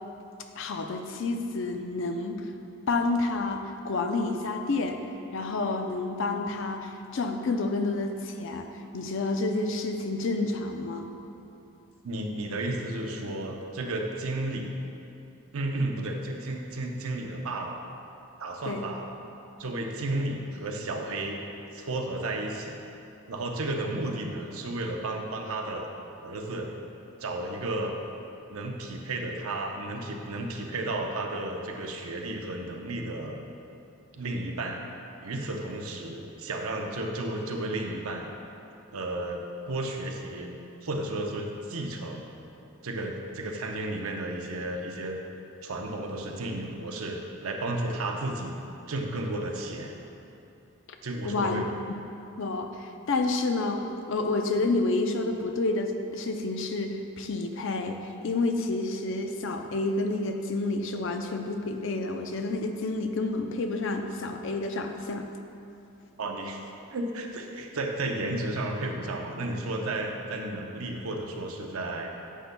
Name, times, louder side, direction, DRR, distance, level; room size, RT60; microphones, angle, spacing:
voice 1, 0.6-2.5 2.9-5.0 5.3-8.7 8.9-11.1 18.6-18.9 51.2-51.6 52.4-65.3, left 3 dB, 60° left, 5 dB, 0.5 m, -29 dB
voice 2, 12.0-14.8 15.5-17.8 18.4-19.1 19.6-21.4 21.7-22.8 23.3-25.9 26.2-26.7 27.2-27.9 28.5-33.4 34.1-34.8 35.2-38.3 38.9-40.5 40.8-42.3 42.8-45.2 45.6-48.6 48.9-50.0 51.0-51.7 66.2-66.6 66.9-72.1, right 2 dB, 75° right, 2 dB, 0.7 m, -33 dB
9.9 x 6.8 x 2.2 m, 2.7 s
head